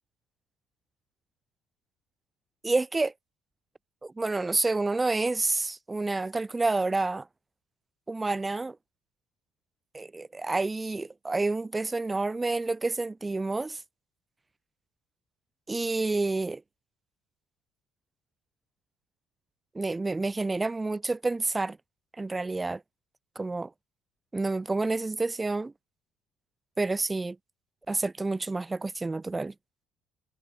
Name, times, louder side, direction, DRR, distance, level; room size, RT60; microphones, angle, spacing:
voice 1, 2.6-3.1 4.0-7.3 8.1-8.8 9.9-13.8 15.7-16.6 19.8-21.8 22.2-22.8 23.4-23.7 24.3-25.7 26.8-27.4 27.9-29.5, right 3 dB, 15° right, 1.7 m, -29 dB
cardioid pair, 140°, 0 cm